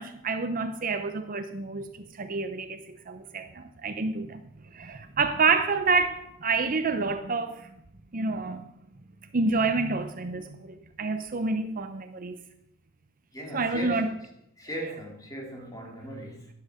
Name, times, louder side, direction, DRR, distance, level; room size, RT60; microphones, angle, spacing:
voice 1, 0.0-1.9 2.2-4.4 4.7-7.7 8.1-8.7 9.3-12.4 13.5-14.1, right 4 dB, 40° right, 0.7 m, -28 dB
voice 2, 13.3-14.1 14.6-16.5, right 1 dB, 15° left, 2.8 m, -38 dB
12.0 x 11.0 x 5.0 m
head